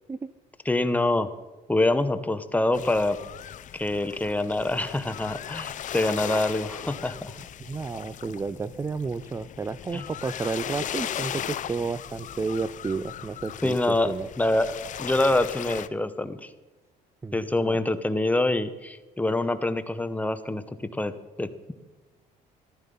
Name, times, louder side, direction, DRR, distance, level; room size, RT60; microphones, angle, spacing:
voice 1, 0.7-1.3 1.7-3.2 3.7-7.3 9.9-10.1 13.6-16.5 17.3-21.7, left 2 dB, 10° left, 11 dB, 0.9 m, -26 dB
sound 1, 2.7-15.9, left 10 dB, 50° left, 0.6 m, -37 dB
voice 2, 7.6-13.8 14.0-14.3 17.2-17.8, right 4 dB, 15° right, 14 dB, 0.4 m, -31 dB
14.5 x 12.0 x 5.4 m, 1.1 s
cardioid pair, 110°, 17 cm